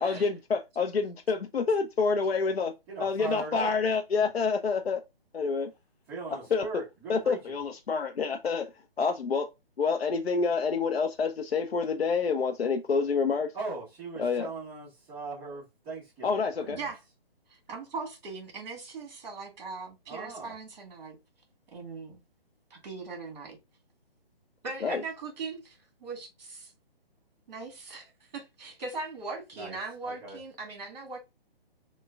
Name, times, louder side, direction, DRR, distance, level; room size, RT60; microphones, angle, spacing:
voice 1, 0.0-2.7 3.0-5.0 5.3-5.7 6.5-6.7 7.1-8.7 9.0-9.5 9.8-13.5 14.2-14.5 16.2-16.8 24.8-25.0, left 5 dB, 85° left, 0.6 m, -27 dB
voice 2, 2.9-3.7 6.1-7.6 13.5-16.9 20.1-20.5 29.5-29.8 30.0-30.4, right 3 dB, 10° right, 1.1 m, -39 dB
voice 3, 16.7-17.0 17.5-21.2 21.7-22.2 22.7-23.6 24.6-26.7 27.5-31.2, right 3 dB, 45° right, 2.0 m, -40 dB
6.0 x 2.2 x 2.3 m
figure-of-eight pair, 145°, 31 cm